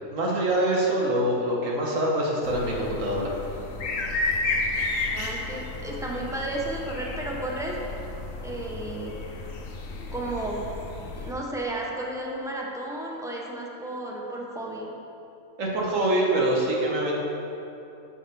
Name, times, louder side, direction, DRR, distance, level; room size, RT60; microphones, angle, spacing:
voice 1, 0.1-3.3 15.6-17.1, right 1 dB, 75° right, -2 dB, 1.6 m, -25 dB
sound 1, 2.4-11.3, left 3 dB, 75° left, 1.1 m, -32 dB
voice 2, 5.1-7.7 8.4-9.2 10.1-10.7 11.1-14.9, right 1 dB, 5° right, -3 dB, 0.7 m, -33 dB
11.0 x 5.2 x 3.4 m, 2.9 s
omnidirectional pair, 1.4 m